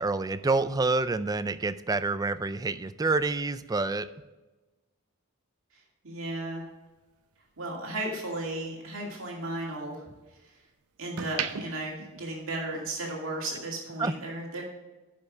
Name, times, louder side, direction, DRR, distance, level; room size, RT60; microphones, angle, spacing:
voice 1, 0.0-4.1 14.0-14.1, right 3 dB, 15° right, 13 dB, 0.3 m, -27 dB
voice 2, 5.7-6.6 7.6-10.1 10.4-10.5 11.0-14.6, right 1 dB, 65° right, -2 dB, 2.3 m, -35 dB
sound 1, 6.3-8.7 9.1-10.5 10.9-13.1 13.4-13.6, right 7 dB, 90° right, 0.7 m, -39 dB
10.5 x 5.5 x 5.1 m, 1.1 s
head